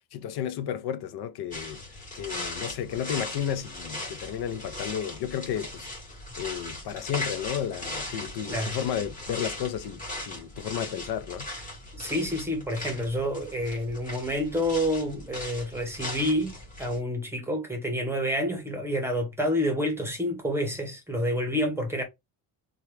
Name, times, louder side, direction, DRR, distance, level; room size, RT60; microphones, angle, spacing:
voice 1, 0.1-1.8 2.1-5.9 6.4-11.5, left 9 dB, 70° left, 0.5 m, -32 dB
sound 1, 1.5-17.0, left 1 dB, 20° left, 1.5 m, -38 dB
voice 2, 11.9-16.5 16.8-22.0, equal, 5° right, 0.8 m, -28 dB
2.8 x 2.3 x 3.2 m
cardioid pair, 170°, 40 cm